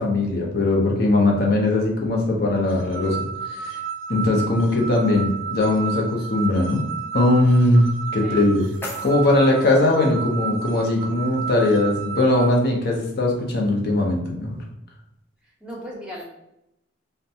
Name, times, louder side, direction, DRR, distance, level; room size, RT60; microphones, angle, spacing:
voice 1, 0.0-3.8 4.1-6.9 7.1-8.7 9.0-14.6, left 2 dB, 50° left, 0 dB, 0.6 m, -20 dB
sound 1, 2.7-12.5, right 6 dB, 70° right, 0.3 m, -32 dB
sound 2, 8.1-10.1, left 1 dB, 10° left, 0.4 m, -39 dB
voice 2, 15.4-16.2, equal, 5° right, -4 dB, 0.8 m, -37 dB
2.5 x 2.2 x 2.7 m, 0.84 s
head